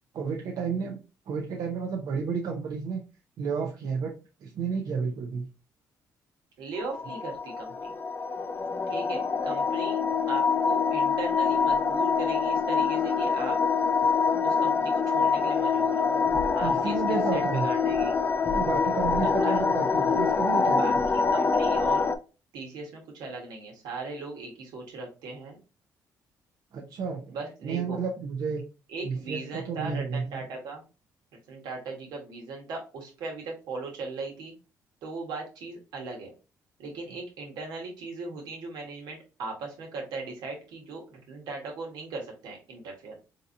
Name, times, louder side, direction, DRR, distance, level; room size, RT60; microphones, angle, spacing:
voice 1, 0.1-1.0 1.3-3.0 3.4-4.1 4.4-5.5 16.6-17.7 18.5-20.8 26.7-27.4 27.6-28.6 29.0-30.4, right 5 dB, 65° right, 0 dB, 0.6 m, -31 dB
voice 2, 6.6-7.9 8.9-10.0 10.3-13.6 14.4-16.3 16.5-18.2 19.2-19.6 20.7-22.1 22.5-25.6 27.3-28.0 28.9-30.8 31.5-34.5 35.0-36.3 36.8-43.2, right 3 dB, 80° right, 0 dB, 1.3 m, -38 dB
sound 1, 6.8-22.2, left 5 dB, 30° left, 0.3 m, -25 dB
3.8 x 2.7 x 2.6 m, 0.32 s
cardioid pair, 100°, 7 cm